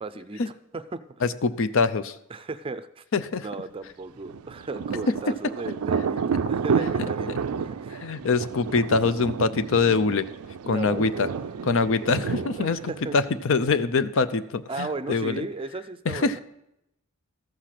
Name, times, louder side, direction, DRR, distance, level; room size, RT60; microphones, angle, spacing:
voice 1, 0.0-1.0 2.3-3.0 3.4-8.0 10.6-13.2 14.7-16.4, right 3 dB, 25° right, 12 dB, 0.5 m, -36 dB
voice 2, 1.2-2.2 3.1-3.5 7.9-10.3 10.7-11.3 11.6-15.4 16.1-16.4, left 4 dB, 65° left, 13 dB, 0.6 m, -24 dB
Thunder, 4.2-13.7, right 6 dB, 85° right, 0.4 m, -30 dB
14.0 x 6.6 x 5.9 m, 0.84 s
head